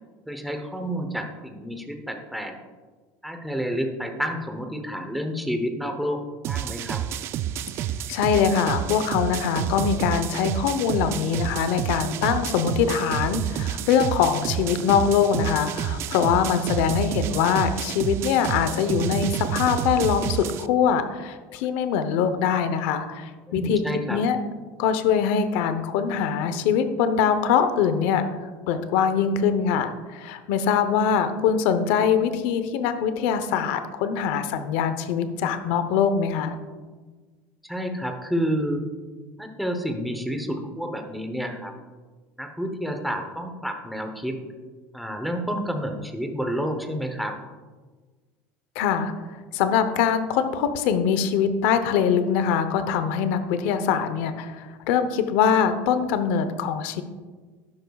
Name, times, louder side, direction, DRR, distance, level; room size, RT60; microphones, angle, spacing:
voice 1, 0.3-2.6 3.2-7.0 23.5-24.2 37.6-38.9 39.4-41.7 42.4-44.4 44.9-47.4, equal, ahead, 4 dB, 0.9 m, -29 dB
sound 1, 6.4-20.7, right 11 dB, 40° right, 0.3 m, -29 dB
voice 2, 8.1-23.8 24.1-24.4 24.8-28.3 28.7-36.6 48.7-49.1 49.5-57.0, left 7 dB, 70° left, 10 dB, 0.8 m, -23 dB
12.0 x 10.5 x 2.4 m, 1.4 s
cardioid pair, 155°, 7 cm